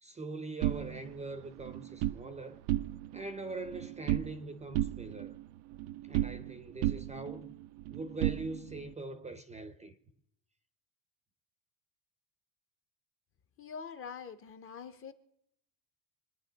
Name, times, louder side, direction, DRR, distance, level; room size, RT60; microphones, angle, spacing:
voice 1, 0.0-2.6 3.1-5.4 6.0-7.5 7.9-10.0, right 2 dB, 15° right, 0.6 m, -42 dB
sound 1, 0.6-2.2 2.6-3.2 3.5-4.4 4.7-6.5 6.8-8.9, right 14 dB, 75° right, 0.6 m, -34 dB
voice 2, 13.6-15.1, left 6 dB, 30° left, 0.7 m, -44 dB
25.0 x 9.6 x 3.9 m
cardioid pair, 145°, 48 cm